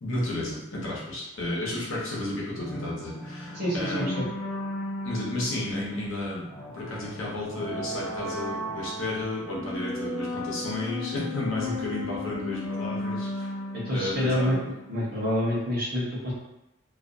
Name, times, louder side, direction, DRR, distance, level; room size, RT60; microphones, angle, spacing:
voice 1, 0.0-4.3 5.0-6.4 6.7-13.5 13.9-14.6, left 1 dB, 75° left, -5 dB, 0.8 m, -32 dB
sound 1, 2.6-15.1, left 1 dB, 10° left, 0.5 m, -36 dB
voice 2, 3.5-4.3 13.7-14.6 14.9-16.3, equal, 45° right, -6 dB, 0.9 m, -27 dB
2.4 x 2.2 x 2.5 m, 0.94 s
head